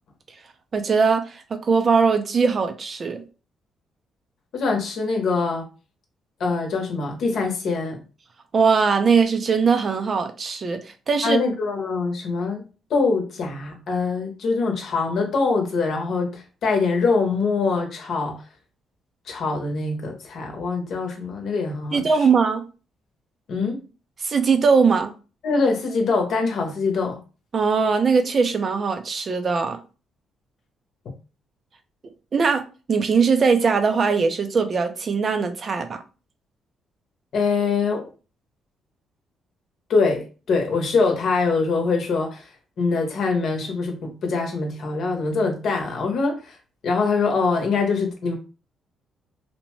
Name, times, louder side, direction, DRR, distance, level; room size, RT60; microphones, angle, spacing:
voice 1, 0.7-3.2 8.5-10.8 11.1-11.4 21.9-22.6 24.2-25.1 27.5-29.8 32.3-36.0, right 5 dB, 45° right, 0.5 m, -20 dB
voice 2, 4.5-5.7 6.4-8.0 11.2-18.4 19.3-22.0 23.5-23.8 25.4-27.2 37.3-38.0 39.9-42.5 42.8-46.6 46.8-48.3, left 4 dB, 65° left, 0.8 m, -23 dB
2.7 x 2.1 x 3.0 m
cardioid pair, 90°, 0 cm